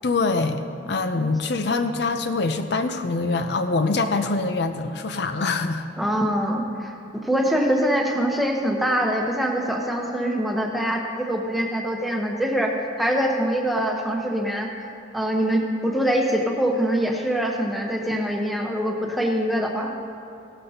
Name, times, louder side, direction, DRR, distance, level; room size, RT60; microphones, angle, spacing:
voice 1, 0.0-5.8, left 3 dB, 65° left, 8 dB, 0.6 m, -24 dB
voice 2, 6.0-14.7 15.1-19.9, equal, ahead, 0 dB, 0.9 m, -24 dB
16.0 x 12.0 x 2.9 m, 3.0 s
head